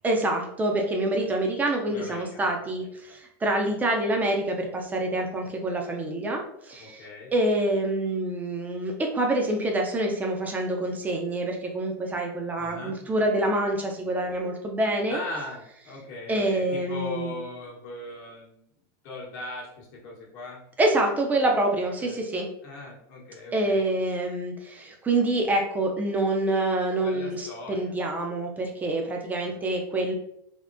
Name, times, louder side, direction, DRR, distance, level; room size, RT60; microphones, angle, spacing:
voice 1, 0.0-7.0 7.3-15.2 16.3-17.3 20.8-22.5 23.5-30.1, right 1 dB, 15° right, 2 dB, 0.5 m, -26 dB
voice 2, 1.9-3.2 3.5-3.6 6.8-7.3 12.6-13.0 15.1-18.6 19.0-20.6 22.0-22.2 22.6-23.8 27.0-28.0 29.4-29.6, left 2 dB, 60° left, -3 dB, 0.9 m, -39 dB
3.5 x 2.0 x 2.5 m, 0.73 s
supercardioid pair, 135°, 11 cm